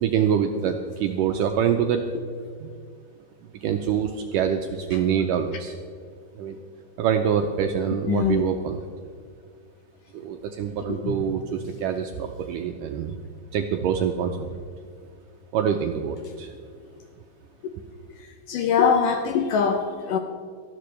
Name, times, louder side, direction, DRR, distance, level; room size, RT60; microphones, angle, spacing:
voice 1, 0.0-2.0 2.6-2.7 3.6-5.8 6.4-6.6 7.0-8.9 10.1-13.2 13.5-14.5 15.5-16.5, right 8 dB, 85° right, 4 dB, 1.9 m, -25 dB
voice 2, 8.1-8.4 11.0-11.3 18.5-20.2, left 6 dB, 75° left, 5 dB, 2.0 m, -22 dB
18.5 x 14.0 x 3.3 m, 2.1 s
omnidirectional pair, 4.5 m